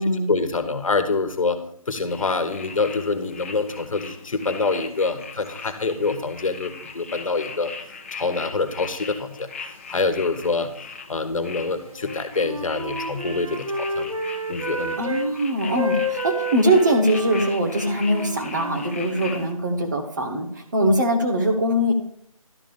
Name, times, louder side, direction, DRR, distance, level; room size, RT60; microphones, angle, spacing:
voice 1, 0.0-1.6 1.9-7.7 8.1-9.5 9.9-10.7 11.1-14.1 14.5-15.0, left 3 dB, 65° left, 9 dB, 1.3 m, -26 dB
sound 1, 2.1-19.5, left 4 dB, 25° left, 0.7 m, -40 dB
Wind instrument woodwind instrument, 11.9-15.3 15.6-19.5, equal, 65° right, 1.3 m, -30 dB
voice 2, 15.0-21.9, right 1 dB, 30° right, 4 dB, 1.1 m, -22 dB
12.0 x 3.9 x 7.0 m, 0.69 s
figure-of-eight pair, 170°, 18 cm